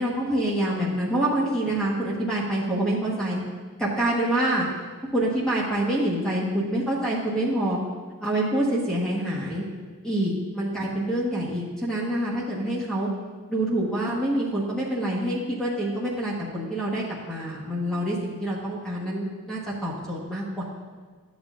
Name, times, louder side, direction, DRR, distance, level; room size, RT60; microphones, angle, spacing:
voice 1, 0.0-3.4 3.8-4.7 5.1-7.8 8.2-9.6 10.0-13.1 13.5-20.6, right 1 dB, 5° left, -6 dB, 1.2 m, -26 dB
12.0 x 7.3 x 2.5 m, 1.5 s
head